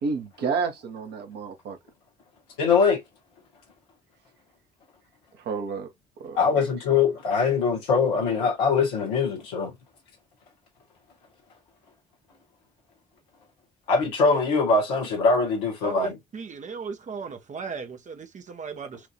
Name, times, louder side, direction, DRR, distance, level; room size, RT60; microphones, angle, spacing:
voice 1, 0.0-1.8 5.4-5.9 6.2-6.6, right 5 dB, 55° right, 1.3 m, -30 dB
voice 2, 2.6-3.0 6.3-9.7 13.9-16.2, left 4 dB, 70° left, 1.3 m, -22 dB
voice 3, 15.8-19.0, right 5 dB, 35° right, 1.0 m, -36 dB
5.9 x 2.7 x 2.3 m
figure-of-eight pair, 45°, 21 cm